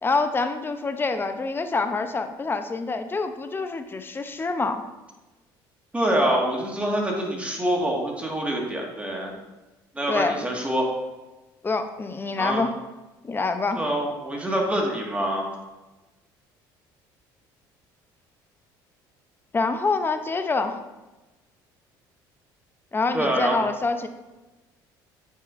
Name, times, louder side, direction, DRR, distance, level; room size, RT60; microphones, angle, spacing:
voice 1, 0.0-4.8 10.1-10.3 11.6-12.7 13.2-13.8 19.5-20.8 22.9-24.1, left 3 dB, 20° left, 8 dB, 0.6 m, -26 dB
voice 2, 5.9-9.3 9.9-10.9 12.4-12.6 13.7-15.5 23.1-23.6, right 1 dB, 15° right, -1 dB, 1.7 m, -25 dB
9.0 x 5.6 x 2.5 m, 1.1 s
supercardioid pair, 90°, 10 cm